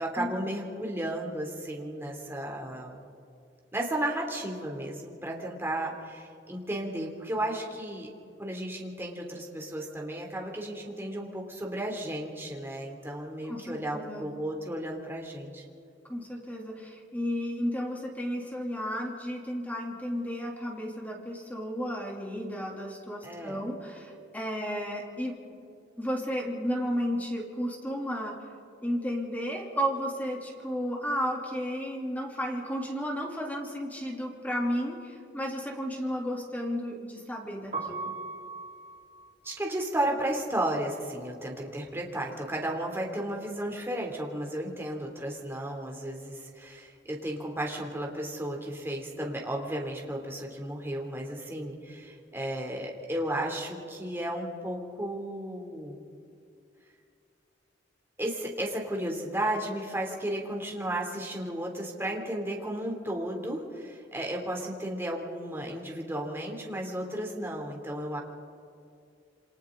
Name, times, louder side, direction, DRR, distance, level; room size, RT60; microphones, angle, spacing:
voice 1, 0.0-3.0 3.7-8.1 8.4-15.6 23.2-23.6 39.4-56.0 58.2-68.2, right 1 dB, 15° right, 0 dB, 3.0 m, -34 dB
voice 2, 13.5-14.3 16.1-25.5 26.0-28.5 28.8-38.2, equal, 10° left, -1 dB, 3.0 m, -33 dB
Piano, 37.6-43.5 43.8-45.4 45.7-52.1, right 4 dB, 40° right, 3.9 m, -44 dB
28.5 x 26.0 x 3.9 m, 2.4 s
head